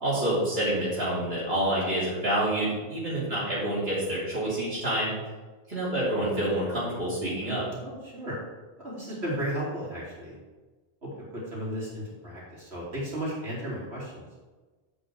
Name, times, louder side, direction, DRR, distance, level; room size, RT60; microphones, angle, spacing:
voice 1, 0.0-5.1 5.7-7.6, right 1 dB, 70° right, -10 dB, 3.3 m, -27 dB
voice 2, 7.8-8.4 8.8-10.4 11.0-14.3, equal, 90° right, -7 dB, 4.0 m, -34 dB
8.9 x 6.2 x 6.3 m, 1.3 s
omnidirectional pair, 1.1 m